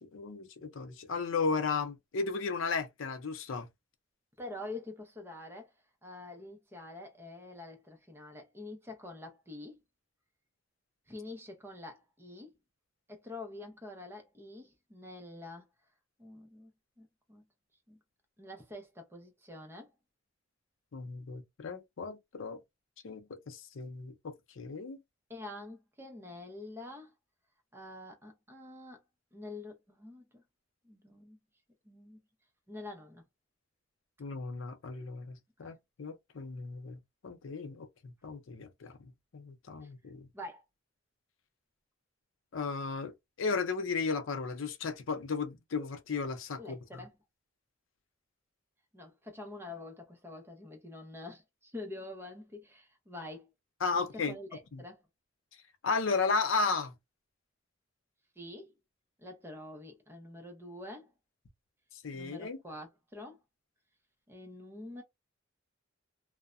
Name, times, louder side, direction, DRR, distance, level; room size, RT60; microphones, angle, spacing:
voice 1, 0.0-3.7 20.9-22.6 23.0-25.0 34.2-40.3 42.5-47.0 53.8-54.3 54.7-54.8 55.8-56.9 62.0-62.6, left 4 dB, 80° left, 0.5 m, -35 dB
voice 2, 4.4-5.7 6.0-9.8 11.1-12.5 13.1-15.7 16.2-16.7 17.0-17.4 17.9-18.0 18.4-19.9 25.3-27.1 27.7-29.0 29.3-30.4 30.8-31.4 31.8-32.2 32.7-33.2 35.6-35.7 39.8-39.9 40.3-40.6 46.6-47.1 48.9-53.5 54.0-55.0 58.4-58.7 59.2-61.1 62.1-63.4 64.3-65.0, left 2 dB, 10° right, 0.7 m, -46 dB
2.7 x 2.1 x 2.3 m
head